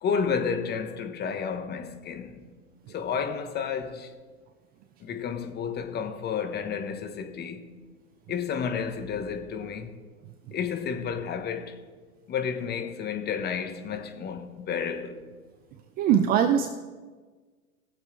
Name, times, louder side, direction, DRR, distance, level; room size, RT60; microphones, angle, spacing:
voice 1, 0.0-2.5 2.9-4.1 5.0-7.7 8.3-10.0 10.5-11.8 12.3-15.2, left 6 dB, 25° left, 1.1 m, -31 dB
voice 2, 16.0-16.7, right 9 dB, 20° right, 0.4 m, -21 dB
19.5 x 7.3 x 3.2 m
hypercardioid pair, 110°, 43 cm